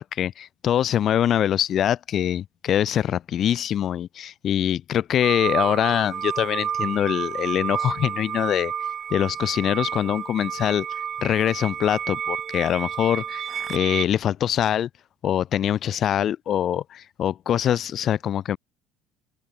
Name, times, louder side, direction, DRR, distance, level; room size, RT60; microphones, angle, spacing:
voice 1, 0.0-8.7 9.1-10.9 11.2-14.9 15.2-18.6, left 10 dB, 40° left, 3.6 m, -24 dB
sound 1, 5.2-14.1, right 8 dB, 30° right, 1.7 m, -30 dB
open air
cardioid pair, 150°, 0 cm